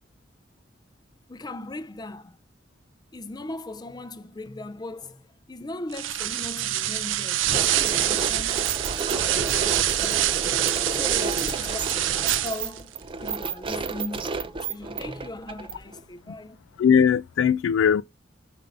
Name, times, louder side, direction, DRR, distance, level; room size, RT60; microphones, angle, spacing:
voice 1, 1.3-2.4 3.1-8.7 9.1-10.3 10.9-16.6, left 2 dB, 20° left, 0.5 m, -39 dB
sound 1, 5.9-12.8, right 12 dB, 80° right, 0.5 m, -25 dB
sound 2, 7.5-16.0, right 4 dB, 25° right, 0.5 m, -32 dB
voice 2, 16.8-18.0, left 7 dB, 75° left, 0.3 m, -20 dB
5.3 x 5.3 x 3.8 m
head